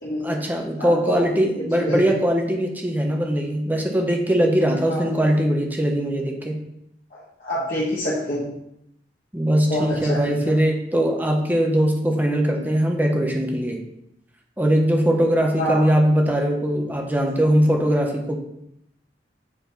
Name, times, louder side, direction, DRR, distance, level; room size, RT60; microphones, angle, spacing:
voice 1, 0.2-6.6 9.3-13.8 14.6-18.4, equal, 10° right, 2 dB, 1.0 m, -21 dB
voice 2, 0.8-1.2 1.9-2.0 4.9-5.0 7.1-8.5 9.6-10.2 10.4-10.6 15.6-15.8, left 1 dB, 50° left, -7 dB, 1.6 m, -26 dB
8.0 x 4.4 x 4.1 m, 0.78 s
head